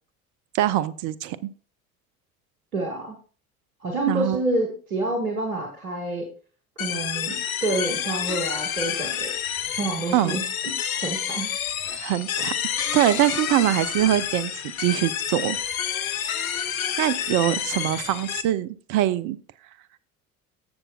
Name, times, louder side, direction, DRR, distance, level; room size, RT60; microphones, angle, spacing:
voice 1, 0.5-1.4 4.1-4.4 10.1-10.4 11.9-12.5 12.9-14.5 14.8-15.6 17.0-19.4, right 13 dB, 45° right, 14 dB, 0.5 m, -23 dB
voice 2, 2.7-3.2 3.8-6.2 6.8-7.4 7.6-9.3 9.7-10.7 11.0-11.5, right 2 dB, 85° right, 2 dB, 1.2 m, -28 dB
sound 1, 6.8-18.4, left 9 dB, 75° left, 0.8 m, -29 dB
14.5 x 6.7 x 2.3 m, 0.40 s
figure-of-eight pair, 60°, 42 cm